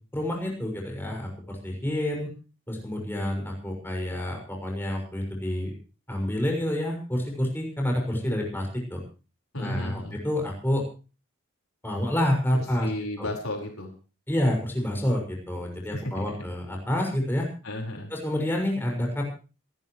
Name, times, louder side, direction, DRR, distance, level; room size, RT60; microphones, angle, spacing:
voice 1, 0.1-2.3 2.7-5.7 6.1-9.0 9.6-10.8 11.8-12.9 13.2-13.3 14.3-17.5 18.1-19.2, left 1 dB, 10° left, 0 dB, 6.1 m, -28 dB
voice 2, 9.5-10.2 12.5-13.9 15.9-16.4 17.6-18.1, left 1 dB, 75° left, 1 dB, 4.9 m, -34 dB
27.5 x 13.0 x 3.2 m, 0.35 s
head